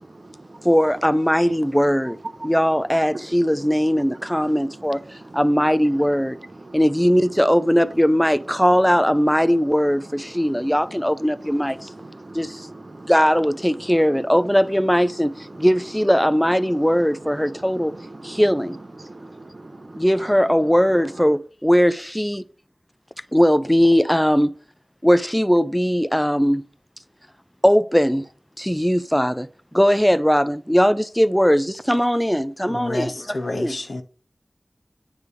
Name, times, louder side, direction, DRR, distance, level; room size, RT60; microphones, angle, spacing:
voice 1, 0.6-2.2 2.4-5.0 5.3-6.4 6.7-11.9 12.3-12.7 13.1-17.9 18.2-18.8 20.0-22.4 23.3-24.5 25.0-26.6 27.6-28.3 28.6-29.5 29.7-33.1 33.5-33.8, equal, 5° left, 0.5 m, -19 dB
voice 2, 12.0-12.5 12.9-13.1 18.0-18.4 19.0-19.7, right 2 dB, 55° right, 0.8 m, -41 dB
voice 3, 32.7-34.0, left 2 dB, 80° left, 0.9 m, -29 dB
9.4 x 3.4 x 6.7 m
wide cardioid pair, 45°, 0 cm